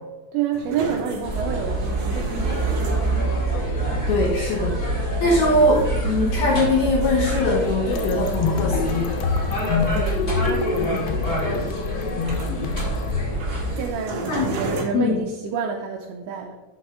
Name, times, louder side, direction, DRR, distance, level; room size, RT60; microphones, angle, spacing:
voice 1, 0.3-3.0 4.2-4.5 4.9-5.2 9.9-11.7 13.7-16.6, right 7 dB, 85° right, 2 dB, 2.5 m, -30 dB
sound 1, 0.5-14.8, right 2 dB, 60° right, 2.5 m, -36 dB
sound 2, 1.2-13.9, right 1 dB, 25° left, 2.2 m, -26 dB
voice 2, 4.1-9.1 14.3-14.6 14.9-15.2, left 1 dB, 75° left, -2 dB, 2.4 m, -22 dB
sound 3, 7.9-13.2, left 5 dB, 90° left, 2.5 m, -27 dB
12.0 x 7.6 x 2.4 m, 1.2 s
omnidirectional pair, 5.7 m